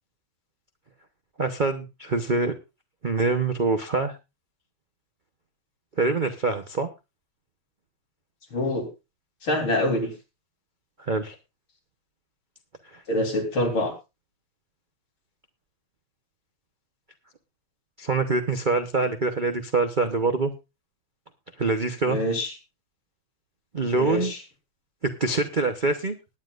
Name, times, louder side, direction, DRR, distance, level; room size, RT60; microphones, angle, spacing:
voice 1, 1.4-2.5 3.0-4.1 6.0-6.9 11.0-11.3 12.9-13.0 18.0-20.5 21.6-22.2 23.7-24.3 25.0-26.2, right 3 dB, 50° right, 7 dB, 0.6 m, -25 dB
voice 2, 8.5-8.9 9.4-10.1 13.1-13.9 22.1-22.5 23.9-24.4, left 1 dB, 70° left, 1 dB, 4.5 m, -25 dB
20.0 x 9.8 x 2.5 m, 0.26 s
omnidirectional pair, 2.4 m